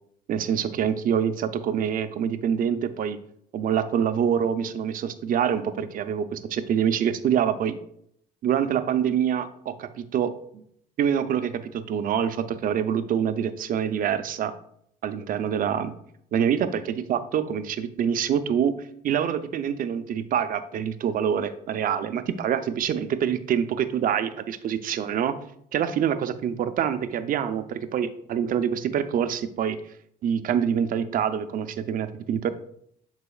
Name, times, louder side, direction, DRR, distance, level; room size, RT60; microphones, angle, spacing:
voice 1, 0.3-3.2 3.5-7.8 8.4-10.6 11.0-14.5 15.0-15.9 16.3-25.3 25.7-29.8 30.2-32.5, right 8 dB, 55° right, 10 dB, 0.6 m, -26 dB
11.0 x 4.2 x 2.4 m, 0.69 s
cardioid pair, 110°, 17 cm